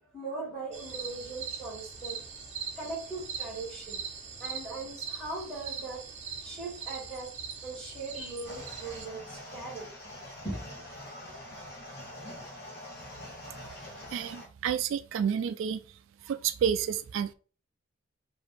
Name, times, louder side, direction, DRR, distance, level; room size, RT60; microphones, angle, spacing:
voice 1, 0.0-2.2 2.8-4.0 4.4-6.0 6.4-7.3 7.6-9.9 10.3-10.7, right 3 dB, 5° left, 2.2 m, -39 dB
sound 1, 0.7-9.1, right 6 dB, 35° right, 0.7 m, -41 dB
sound 2, 8.4-14.5, left 1 dB, 50° left, 1.2 m, -45 dB
voice 2, 14.1-15.8 16.2-17.3, right 8 dB, 80° right, 0.3 m, -30 dB
4.8 x 2.6 x 3.3 m
head